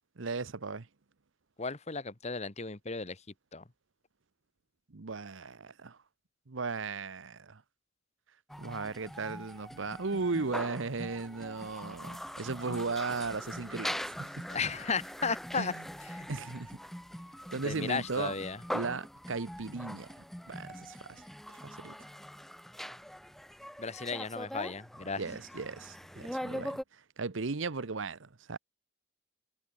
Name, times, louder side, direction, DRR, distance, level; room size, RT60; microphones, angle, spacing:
voice 1, 0.2-0.9 4.9-6.0 6.5-7.6 8.6-14.5 15.5-15.8 16.3-16.8 17.5-18.3 18.7-21.9 25.2-28.6, right 4 dB, 75° right, 0.9 m, -37 dB
voice 2, 1.6-3.2 3.5-3.6 12.6-12.8 14.5-15.7 16.1-16.3 17.6-18.6 23.8-25.2, left 4 dB, 35° left, 1.2 m, -35 dB
sound 1, 8.5-26.8, equal, ahead, 0.7 m, -42 dB
head